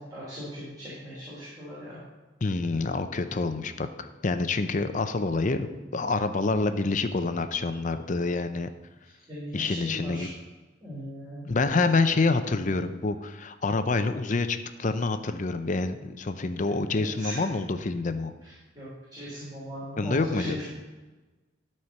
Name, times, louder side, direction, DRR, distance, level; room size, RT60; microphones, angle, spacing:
voice 1, 0.0-2.0 9.0-10.3 10.8-11.5 16.6-17.4 18.4-20.6, equal, 20° right, -9 dB, 3.3 m, -38 dB
voice 2, 2.4-5.7 5.9-8.7 9.5-10.3 11.5-18.3 20.0-20.6, left 3 dB, 40° left, 9 dB, 0.6 m, -27 dB
13.0 x 4.4 x 6.5 m, 1.2 s
head